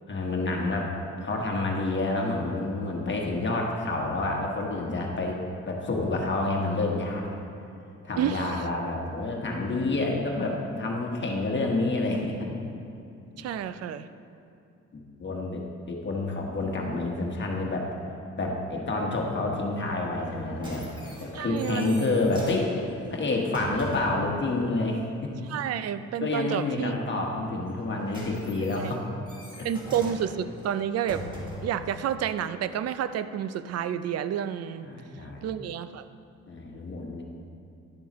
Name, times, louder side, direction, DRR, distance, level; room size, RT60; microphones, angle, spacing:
voice 1, 0.1-5.4 5.6-7.2 8.0-12.5 13.3-13.5 14.9-15.6 15.9-17.9 18.4-20.8 21.2-25.3 26.2-29.0 29.6-29.7 34.8-35.5 36.5-37.2, left 2 dB, 40° left, -1 dB, 1.3 m, -28 dB
voice 2, 8.2-8.5 13.4-14.1 21.3-22.0 25.5-26.9 28.8-28.9 29.6-31.2 31.6-34.9 35.4-36.0, right 9 dB, 55° right, 13 dB, 0.4 m, -30 dB
sound 1, 20.2-24.3 27.7-31.8 32.6-32.7, equal, 15° right, 1.8 m, -41 dB
10.5 x 7.0 x 3.1 m, 2.7 s
cardioid pair, 90°, 30 cm